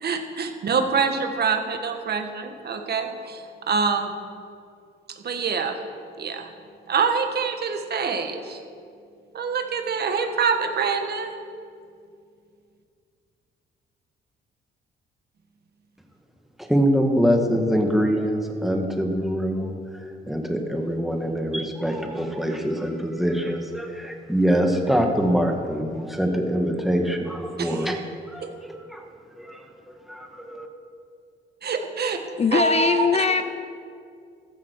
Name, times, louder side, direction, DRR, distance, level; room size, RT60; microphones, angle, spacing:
voice 1, 0.0-4.2 5.1-5.8 6.2-6.5 6.9-8.6 9.3-11.3 27.6-27.9 28.4-28.5 31.6-32.2 32.5-33.4, right 5 dB, 55° right, 6 dB, 1.5 m, -25 dB
voice 2, 16.6-28.0 28.3-29.0 29.4-29.6 30.1-30.7, equal, ahead, 2 dB, 1.9 m, -24 dB
voice 3, 32.4-33.4, left 5 dB, 30° left, 10 dB, 0.6 m, -21 dB
14.0 x 13.5 x 4.8 m, 2.3 s
cardioid pair, 90°, 20 cm